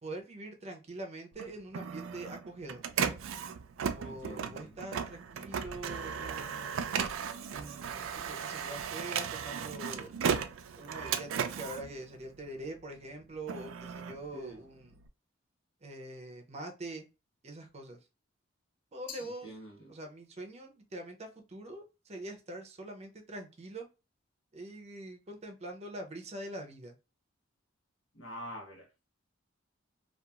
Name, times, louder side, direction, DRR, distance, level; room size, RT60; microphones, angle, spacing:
voice 1, 0.0-2.9 3.8-6.8 7.5-10.1 10.8-15.0 15.8-17.1 17.4-18.0 18.9-19.5 19.9-23.9 24.5-27.0, right 1 dB, 35° right, 0.6 m, -44 dB
Printer, 1.3-12.8 13.2-15.1, right 7 dB, 85° right, 0.4 m, -36 dB
voice 2, 4.0-4.8 14.3-14.6 19.2-19.7 28.1-28.8, equal, 70° left, 1.2 m, -45 dB
Glass, 19.1-20.3, left 7 dB, 45° left, 0.5 m, -50 dB
2.9 x 2.3 x 2.3 m
head